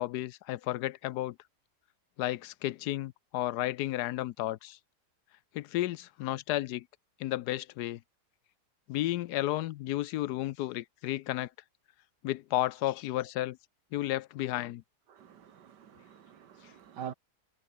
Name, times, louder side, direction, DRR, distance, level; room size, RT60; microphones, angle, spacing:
voice 1, 0.0-1.4 2.2-4.8 5.5-6.9 7.2-8.0 8.9-11.5 12.2-13.6 13.9-14.8, left 15 dB, 75° left, 1.1 m, -32 dB
voice 2, 15.1-17.1, right 8 dB, 85° right, 2.0 m, -45 dB
omnidirectional pair, 1.8 m